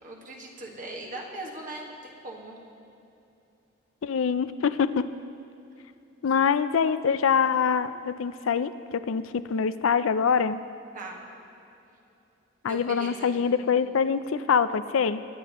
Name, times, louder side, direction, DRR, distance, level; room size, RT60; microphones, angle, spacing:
voice 1, 0.0-2.6 10.9-11.2 12.6-13.4, right 2 dB, 40° right, -1 dB, 1.6 m, -40 dB
voice 2, 4.0-5.1 6.2-10.6 12.6-15.2, left 6 dB, 90° left, 13 dB, 0.4 m, -24 dB
21.0 x 10.0 x 3.0 m, 2.8 s
head